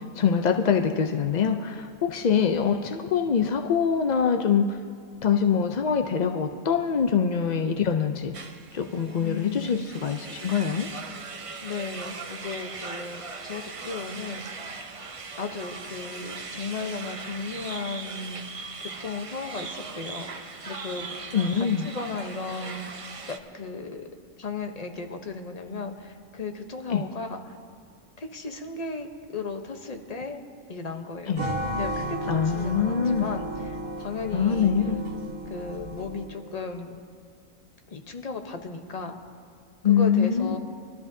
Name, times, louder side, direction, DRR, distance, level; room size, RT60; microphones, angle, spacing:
voice 1, 0.1-4.8 5.2-8.3 8.7-10.9 21.3-21.9 26.9-27.0 31.3-31.4 32.3-33.3 34.3-35.0 39.8-40.6, left 7 dB, 65° left, 4 dB, 0.4 m, -24 dB
sound 1, 8.3-23.4, right 4 dB, 45° right, 0.4 m, -39 dB
voice 2, 9.2-10.0 11.6-14.6 15.4-18.4 18.8-21.2 21.5-22.9 23.3-24.1 24.4-27.6 28.2-30.4 30.7-31.3 31.8-34.7 35.5-36.9 37.9-39.2 39.9-40.6, left 4 dB, 35° left, 5 dB, 0.8 m, -35 dB
sound 2, 31.4-36.5, right 1 dB, 85° right, 1.7 m, -33 dB
22.5 x 13.0 x 2.7 m, 2.1 s
omnidirectional pair, 1.4 m